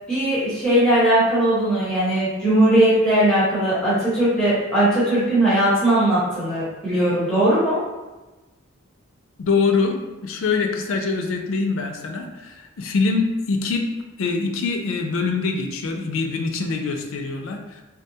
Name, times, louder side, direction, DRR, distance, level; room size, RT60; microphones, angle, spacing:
voice 1, 0.1-7.8, right 1 dB, 5° left, -11 dB, 0.8 m, -19 dB
voice 2, 9.4-13.9 14.2-17.8, left 4 dB, 75° left, 4 dB, 0.4 m, -24 dB
3.5 x 2.2 x 2.7 m, 1.1 s
head